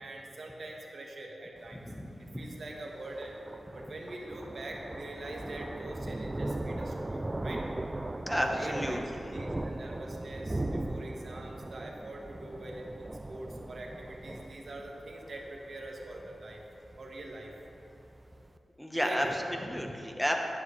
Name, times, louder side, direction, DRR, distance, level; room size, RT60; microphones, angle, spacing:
voice 1, 0.0-1.8 2.4-3.4 3.7-7.6 8.4-9.0 9.3-16.6 17.0-17.5 18.9-19.4, right 2 dB, 60° right, -1 dB, 1.5 m, -43 dB
Thunder, 1.6-18.5, right 1 dB, 20° right, 0.4 m, -39 dB
voice 2, 1.8-2.5 8.3-9.4 18.8-20.4, equal, 5° left, 2 dB, 1.0 m, -32 dB
12.0 x 11.0 x 3.3 m, 3.0 s
wide cardioid pair, 115°, 0 cm